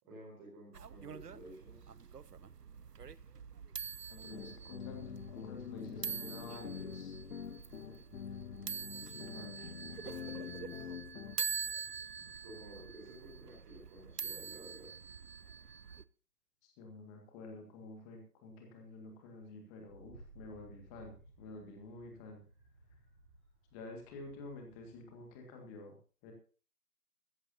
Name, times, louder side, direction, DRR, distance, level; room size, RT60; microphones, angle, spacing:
voice 1, 0.0-1.9 10.2-11.0 12.2-14.9, right 1 dB, 15° right, -2 dB, 3.9 m, -53 dB
sound 1, 0.7-16.0, right 6 dB, 80° right, 0.8 m, -45 dB
voice 2, 4.1-7.2 9.1-9.5 16.6-22.4 23.7-26.0 26.2-26.3, left 2 dB, 10° left, 3 dB, 1.9 m, -50 dB
sound 2, 4.3-11.4, left 8 dB, 60° left, 0.6 m, -46 dB
Wind, 19.8-25.3, right 1 dB, 45° right, 7.2 m, -59 dB
16.0 x 14.0 x 2.7 m, 0.37 s
figure-of-eight pair, 145°, 47 cm